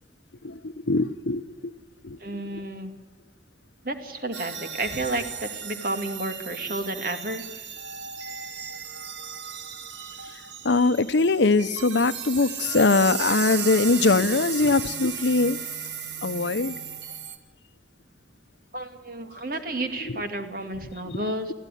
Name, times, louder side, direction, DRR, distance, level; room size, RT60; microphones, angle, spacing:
voice 1, 0.4-1.7 2.0-2.2 10.6-15.6 16.2-16.7 21.1-21.2, left 3 dB, 75° left, 14 dB, 0.8 m, -22 dB
voice 2, 2.2-2.9 3.8-7.6 18.7-21.5, right 2 dB, 50° right, 6 dB, 2.3 m, -31 dB
sound 1, 4.3-17.4, right 7 dB, 80° right, 1.8 m, -35 dB
21.5 x 15.5 x 10.0 m, 1.4 s
head